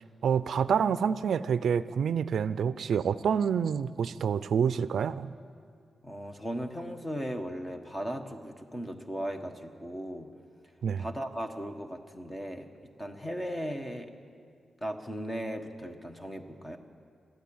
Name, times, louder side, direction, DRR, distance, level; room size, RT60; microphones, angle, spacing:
voice 1, 0.2-5.3 10.8-11.1, right 7 dB, 75° right, 15 dB, 0.5 m, -27 dB
voice 2, 6.0-10.3 11.0-12.7 13.0-14.1 14.8-16.8, equal, 15° left, 5 dB, 1.3 m, -37 dB
22.0 x 13.5 x 8.7 m, 2.3 s
wide cardioid pair, 155°, 0 cm